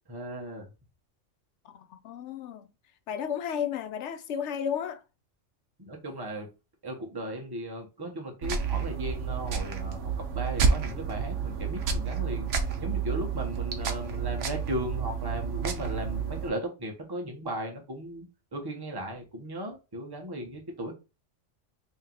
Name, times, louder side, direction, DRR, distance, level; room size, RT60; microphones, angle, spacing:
voice 1, 0.1-0.7 5.8-6.5 6.8-18.3 18.5-20.9, equal, 20° right, 0.9 m, -36 dB
voice 2, 1.6-2.7 3.1-5.0, left 8 dB, 70° left, 0.9 m, -33 dB
sound 1, 8.4-16.5, right 6 dB, 75° right, 1.0 m, -30 dB
2.9 x 2.8 x 3.8 m
omnidirectional pair, 1.3 m